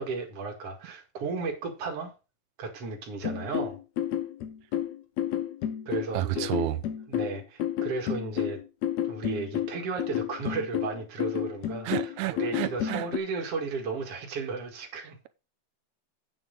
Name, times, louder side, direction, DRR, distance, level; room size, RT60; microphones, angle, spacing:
voice 1, 0.0-2.1 2.6-3.8 5.9-6.5 7.1-8.6 9.0-15.2, right 4 dB, 55° right, 2.8 m, -34 dB
sound 1, 3.2-13.2, left 11 dB, 70° left, 2.1 m, -31 dB
voice 2, 6.1-6.8 11.8-13.1, right 15 dB, 85° right, 2.2 m, -30 dB
9.1 x 6.2 x 5.3 m
omnidirectional pair, 3.3 m